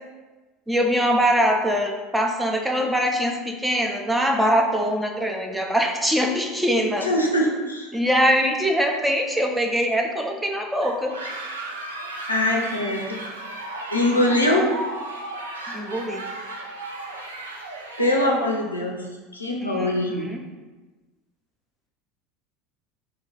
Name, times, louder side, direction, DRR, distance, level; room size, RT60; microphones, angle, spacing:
voice 1, 0.7-7.1 7.9-11.2 15.7-16.2 19.6-20.4, equal, 5° right, 2 dB, 0.4 m, -23 dB
voice 2, 7.0-7.9 12.3-13.2 13.9-14.7 18.0-19.1 19.3-20.3, left 1 dB, 85° left, -1 dB, 0.4 m, -22 dB
sound 1, 10.8-18.6, right 2 dB, 75° right, 0.3 m, -35 dB
2.3 x 2.2 x 3.8 m, 1.3 s
figure-of-eight pair, 75°, 0 cm